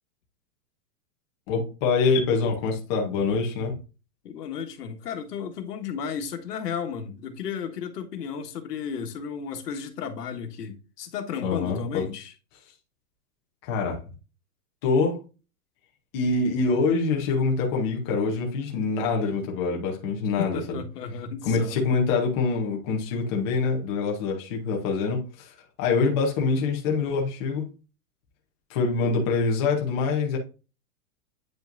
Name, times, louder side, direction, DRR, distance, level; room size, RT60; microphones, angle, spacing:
voice 1, 1.5-3.8 11.4-12.0 13.6-14.0 14.8-15.2 16.1-20.8 21.4-27.7 28.7-30.4, left 4 dB, 20° left, 0.8 m, -25 dB
voice 2, 4.2-12.3 20.4-21.8, left 7 dB, 80° left, 1.5 m, -34 dB
8.9 x 5.5 x 2.5 m
supercardioid pair, 180°, 47 cm